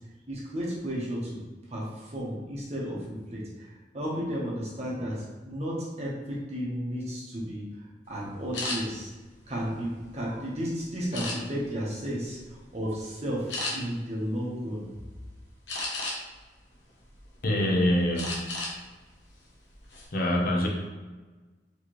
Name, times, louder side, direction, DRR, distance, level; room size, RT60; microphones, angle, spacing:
voice 1, 0.3-1.4 1.7-7.7 8.1-9.1 9.5-14.9, equal, 40° right, -4 dB, 1.0 m, -33 dB
sound 1, 8.5-8.8 9.4-10.4 11.1-11.7 12.2-12.5 12.8-13.0 13.5-13.7 15.7-16.4 16.9-17.6 18.2-18.8 19.1-19.3 19.7-20.1, left 2 dB, 80° left, 1.0 m, -34 dB
voice 2, 17.4-18.6 20.1-20.7, left 1 dB, 55° left, -1 dB, 0.8 m, -25 dB
4.5 x 3.2 x 3.1 m, 1.3 s
head